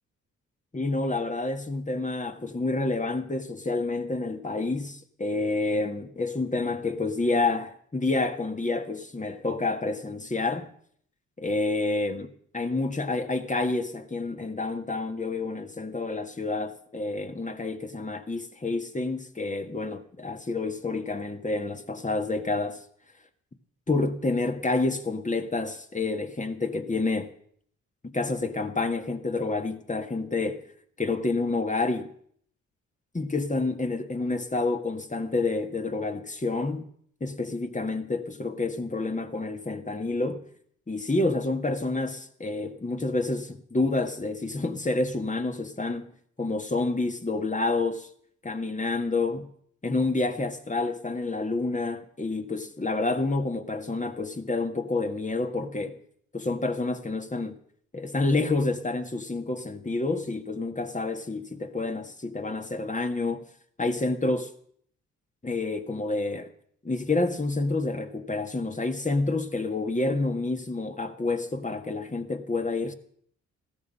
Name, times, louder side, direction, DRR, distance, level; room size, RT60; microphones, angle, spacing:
voice 1, 0.7-10.7 11.4-22.8 23.9-27.3 28.0-30.7 31.0-32.1 33.1-36.9 37.2-40.4 40.9-46.1 46.4-48.1 48.5-49.5 49.8-56.0 56.3-57.6 57.9-63.5 63.8-64.5 65.4-66.5 66.8-72.9, left 3 dB, 25° left, 1.8 m, -28 dB
15.0 x 13.5 x 5.6 m
supercardioid pair, 60°, 32 cm